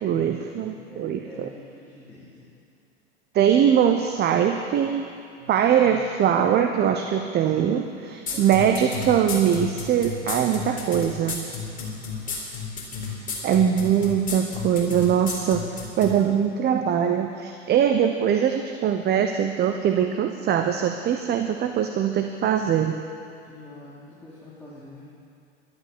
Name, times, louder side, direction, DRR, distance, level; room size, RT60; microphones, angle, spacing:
voice 1, 0.0-1.5 3.3-5.1 5.5-11.5 13.4-15.7 16.0-23.0, right 9 dB, 30° right, 6 dB, 0.9 m, -22 dB
voice 2, 0.5-2.5 5.4-6.0 8.3-8.5 12.1-12.4 23.4-25.1, left 2 dB, 5° left, -8 dB, 3.6 m, -46 dB
sound 1, 8.3-16.1, left 6 dB, 25° left, 4.2 m, -31 dB
12.5 x 11.0 x 8.8 m, 2.6 s
hypercardioid pair, 100°, 34 cm